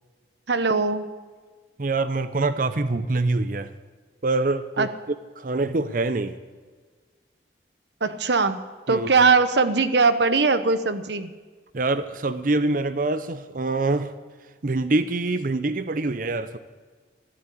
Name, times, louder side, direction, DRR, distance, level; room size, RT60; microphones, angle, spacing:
voice 1, 0.5-1.1 4.8-4.9 8.0-8.6 8.9-11.3, right 4 dB, 75° right, 11 dB, 0.9 m, -20 dB
voice 2, 1.8-3.7 4.2-4.9 5.4-6.4 8.9-9.1 11.7-14.1 14.6-16.6, right 2 dB, 50° right, 12 dB, 0.7 m, -25 dB
13.0 x 12.0 x 8.4 m, 1.5 s
head